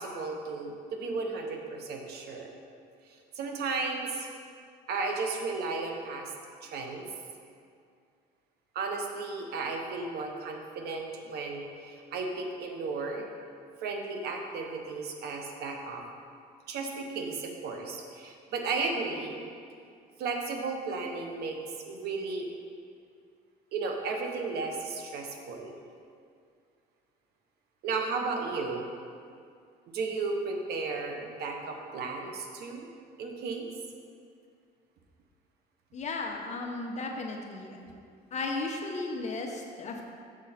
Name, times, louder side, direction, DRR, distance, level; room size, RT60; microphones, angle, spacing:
voice 1, 0.0-2.5 3.3-4.3 4.9-6.3 6.6-7.1 8.7-13.3 13.8-16.0 16.7-19.4 20.2-21.6 21.8-22.5 23.7-25.8 27.8-28.9 29.9-32.9 33.2-33.7, right 4 dB, 70° right, 3 dB, 1.0 m, -34 dB
voice 2, 35.9-37.8 38.3-40.0, left 3 dB, 40° left, 1 dB, 1.0 m, -35 dB
6.3 x 6.2 x 4.3 m, 2.3 s
cardioid pair, 110°, 17 cm